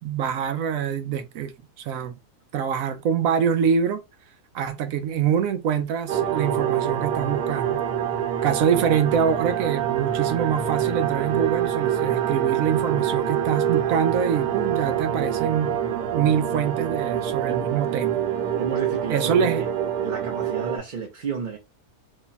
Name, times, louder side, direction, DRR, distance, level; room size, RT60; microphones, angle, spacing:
voice 1, 0.0-1.5 1.8-2.1 2.5-4.0 4.5-7.8 8.4-15.8 16.1-18.2 19.1-19.6, right 7 dB, 75° right, 1.0 m, -25 dB
sound 1, 6.1-20.8, right 10 dB, 90° right, 1.2 m, -25 dB
voice 2, 18.6-19.7 20.0-21.6, right 5 dB, 45° right, 0.6 m, -32 dB
3.0 x 2.3 x 3.9 m
omnidirectional pair, 1.6 m